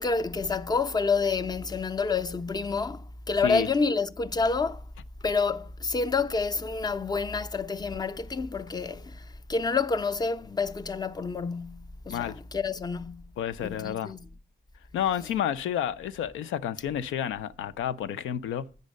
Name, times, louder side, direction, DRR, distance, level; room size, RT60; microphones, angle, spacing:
voice 1, 0.0-4.8 5.2-13.3 13.6-14.2, left 4 dB, 20° left, 0.5 m, -28 dB
voice 2, 13.4-14.1 14.9-18.7, left 9 dB, 80° left, 0.6 m, -30 dB
8.1 x 5.4 x 6.5 m
cardioid pair, 90°, 20 cm